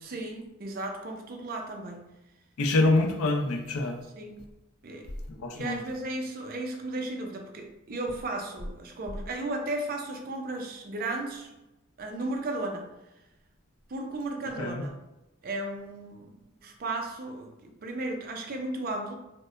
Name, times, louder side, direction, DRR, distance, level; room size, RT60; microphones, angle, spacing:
voice 1, 0.0-2.1 4.2-4.4 4.8-5.1 5.5-11.5 12.0-12.9 13.9-15.1 15.4-16.3 16.6-19.2, right 2 dB, 45° right, 2 dB, 0.4 m, -35 dB
voice 2, 2.6-4.0 5.3-5.8 14.6-14.8, left 2 dB, 90° left, 3 dB, 0.5 m, -26 dB
4.3 x 2.1 x 2.4 m, 0.96 s
head